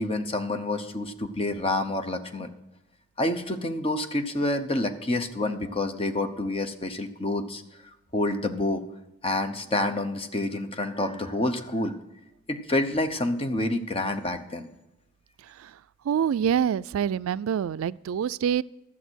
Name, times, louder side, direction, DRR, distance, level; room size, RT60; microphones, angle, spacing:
voice 1, 0.0-2.5 3.2-7.6 8.1-8.8 9.2-12.0 12.5-14.7, left 2 dB, 30° left, 8 dB, 0.8 m, -28 dB
voice 2, 16.0-18.6, right 8 dB, 85° right, 18 dB, 0.3 m, -26 dB
12.0 x 7.2 x 6.2 m, 0.99 s
head